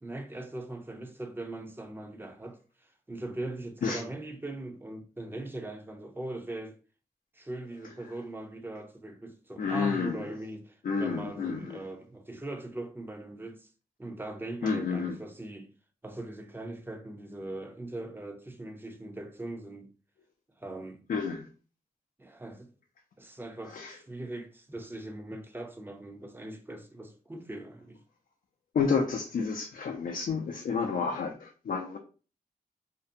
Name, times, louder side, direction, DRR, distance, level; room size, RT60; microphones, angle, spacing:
voice 1, 0.0-6.8 7.3-13.7 14.0-15.7 16.0-19.9 20.6-21.0 22.2-22.7 23.2-28.0, right 2 dB, 15° right, 0.5 m, -40 dB
voice 2, 9.6-10.2 10.8-11.8 14.6-15.2 21.1-21.5 23.7-24.0 28.7-32.0, left 5 dB, 70° left, 0.4 m, -30 dB
2.5 x 2.1 x 2.6 m
wide cardioid pair, 70°, 15 cm